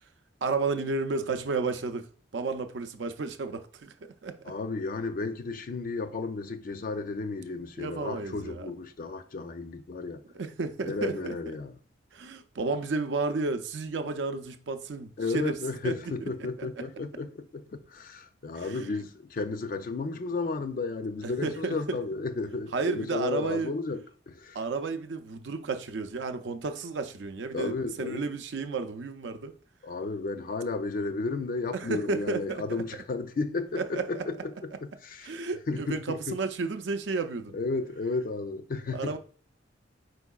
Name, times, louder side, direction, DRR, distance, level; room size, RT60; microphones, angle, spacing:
voice 1, 0.4-2.1 2.3-4.5 7.8-8.7 10.3-11.6 12.1-15.6 15.8-16.0 16.4-16.9 18.5-18.9 21.2-22.0 22.7-23.7 24.5-29.5 31.7-32.8 33.8-34.3 35.2-37.6 38.9-39.2, right 3 dB, 65° right, 0.5 m, -32 dB
voice 2, 4.4-10.2 10.8-11.7 15.2-17.6 17.9-24.6 27.5-28.3 29.8-35.4 35.7-36.4 37.5-39.2, left 3 dB, 45° left, 0.4 m, -33 dB
4.6 x 4.6 x 2.3 m
head